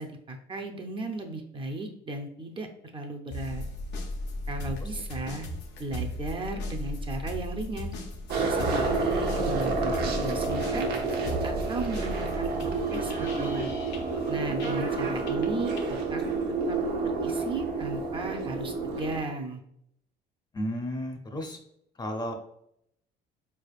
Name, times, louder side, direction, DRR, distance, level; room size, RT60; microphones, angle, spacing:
voice 1, 0.0-2.7 2.9-3.6 4.5-5.5 5.8-8.0 8.5-10.9 11.4-13.7 14.3-15.7 16.1-16.2 16.7-16.8 17.0-19.6, right 2 dB, 30° right, 4 dB, 0.5 m, -35 dB
sound 1, 3.3-15.0 15.3-15.9, left 1 dB, 85° left, 0.7 m, -36 dB
sound 2, 8.3-19.2, right 3 dB, 75° right, 0.8 m, -29 dB
voice 2, 20.5-21.6 22.0-22.3, equal, 25° left, 4 dB, 0.6 m, -33 dB
4.1 x 3.3 x 2.3 m, 0.74 s
cardioid pair, 110°, 17 cm